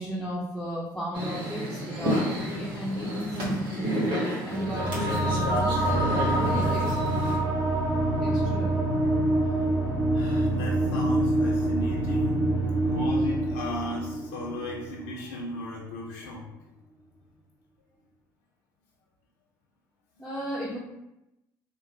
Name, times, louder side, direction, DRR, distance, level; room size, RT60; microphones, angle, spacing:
voice 1, 0.0-5.8 6.4-7.0 8.2-8.8 20.2-20.8, equal, 5° left, -6 dB, 0.7 m, -34 dB
sound 1, 1.1-7.4, equal, 50° right, 1.3 m, -30 dB
sound 2, 4.5-15.4, right 1 dB, 30° right, 0.8 m, -26 dB
voice 2, 10.1-12.5 12.8-16.5, left 1 dB, 75° left, -3 dB, 0.4 m, -36 dB
2.9 x 2.0 x 2.6 m, 0.90 s
hypercardioid pair, 60°, 10 cm